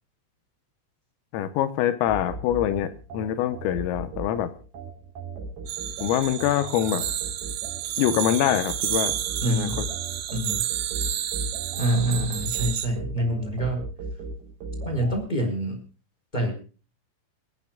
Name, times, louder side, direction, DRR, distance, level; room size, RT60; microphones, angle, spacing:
voice 1, 1.3-4.5 6.0-7.0 8.0-9.2 9.5-9.7, left 11 dB, 80° left, 11 dB, 3.6 m, -24 dB
sound 1, 2.1-15.2, right 3 dB, 50° right, 5.2 m, -37 dB
sound 2, 5.7-12.9, right 12 dB, 80° right, 3.8 m, -30 dB
voice 2, 9.4-9.8 10.3-10.6 11.8-13.8 14.8-15.8 16.3-16.5, right 1 dB, 10° left, 3 dB, 3.1 m, -26 dB
29.0 x 9.9 x 2.3 m, 0.37 s
omnidirectional pair, 6.0 m